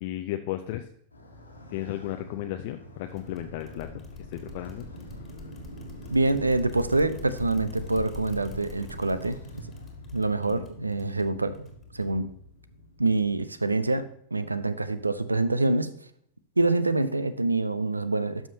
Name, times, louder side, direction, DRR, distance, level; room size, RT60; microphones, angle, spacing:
voice 1, 0.0-0.9 1.7-4.0 4.3-4.9 10.5-10.7, left 14 dB, 50° left, 6 dB, 0.4 m, -34 dB
Motorcycle, 1.1-13.3, equal, 85° left, 1.6 m, -45 dB
sound 1, 3.1-12.3, left 4 dB, 20° left, 1.6 m, -46 dB
voice 2, 6.1-9.4 10.1-11.6 11.9-12.3 13.0-14.1 14.3-15.9 16.6-18.5, right 2 dB, 80° right, 14 dB, 0.5 m, -25 dB
12.0 x 5.7 x 2.8 m, 0.67 s
figure-of-eight pair, 90°, 0 cm